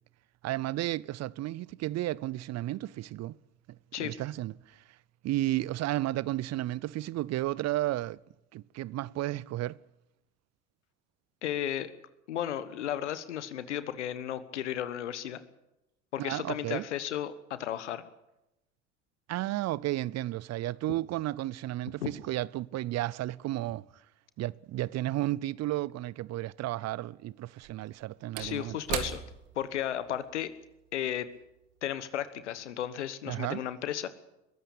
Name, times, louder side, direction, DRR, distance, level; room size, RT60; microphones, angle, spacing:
voice 1, 0.4-3.4 4.0-4.8 5.2-8.2 8.5-9.8 16.2-16.8 19.3-23.9 24.4-28.8 33.3-33.6, right 15 dB, 50° right, 0.6 m, -33 dB
voice 2, 11.4-11.9 12.3-15.4 16.1-18.0 22.0-22.1 28.4-29.2 29.5-30.5 30.9-31.3 31.8-34.1, left 11 dB, 90° left, 1.3 m, -34 dB
Slam / Wood, 25.9-26.0 27.4-32.1 32.5-32.6, right 11 dB, 70° right, 2.1 m, -41 dB
22.0 x 15.0 x 8.5 m
hypercardioid pair, 60°, 34 cm